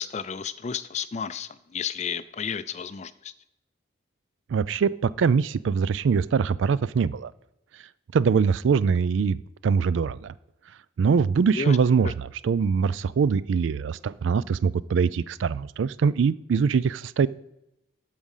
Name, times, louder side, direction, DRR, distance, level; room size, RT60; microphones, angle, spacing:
voice 1, 0.0-3.3 11.6-11.8 12.0-12.1, left 6 dB, 35° left, 15 dB, 0.4 m, -32 dB
voice 2, 4.5-7.3 8.1-9.4 9.6-10.3 11.0-17.3, right 6 dB, 75° right, 19 dB, 0.4 m, -23 dB
13.5 x 5.0 x 5.5 m, 0.89 s
head